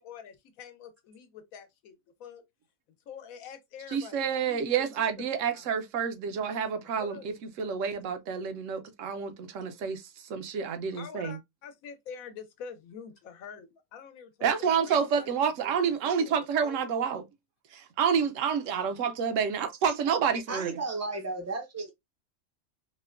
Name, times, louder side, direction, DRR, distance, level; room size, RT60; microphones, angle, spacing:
voice 1, 0.0-2.4 3.1-4.2 4.4-5.0 5.5-5.7 7.0-7.3 10.9-15.3 16.1-16.9, left 7 dB, 75° left, 1.1 m, -46 dB
voice 2, 3.9-11.4 14.4-17.2 17.7-20.7, right 7 dB, 70° right, 0.9 m, -29 dB
voice 3, 20.5-21.9, right 3 dB, 25° right, 0.4 m, -34 dB
4.3 x 2.1 x 2.4 m
omnidirectional pair, 1.5 m